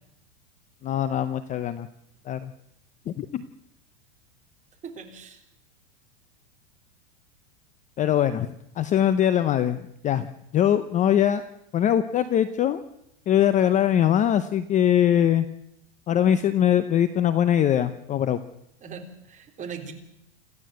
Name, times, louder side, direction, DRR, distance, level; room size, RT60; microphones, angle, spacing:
voice 1, 0.8-1.9 2.3-2.5 3.1-3.4 8.0-10.3 10.5-11.4 11.7-12.8 13.3-15.5 16.1-18.4, left 10 dB, 20° left, 13 dB, 0.7 m, -22 dB
voice 2, 4.8-5.4 18.8-19.9, right 6 dB, 20° right, 3 dB, 3.6 m, -39 dB
26.5 x 14.5 x 7.8 m, 0.82 s
supercardioid pair, 145°, 35 cm